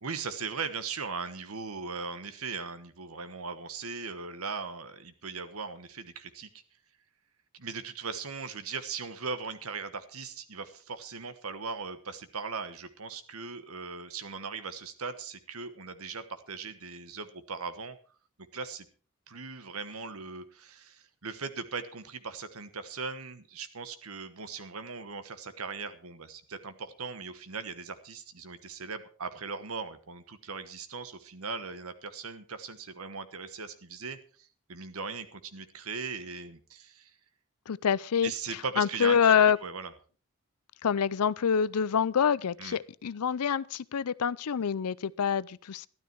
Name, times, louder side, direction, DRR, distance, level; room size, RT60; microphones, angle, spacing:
voice 1, 0.0-6.5 7.5-18.0 18.5-18.9 19.3-37.2 38.2-39.3 39.6-39.9 42.6-42.8, right 5 dB, 70° right, 1.3 m, -39 dB
voice 2, 37.7-38.3 38.8-39.6 40.8-45.9, left 7 dB, 85° left, 0.5 m, -26 dB
12.5 x 12.5 x 4.6 m
head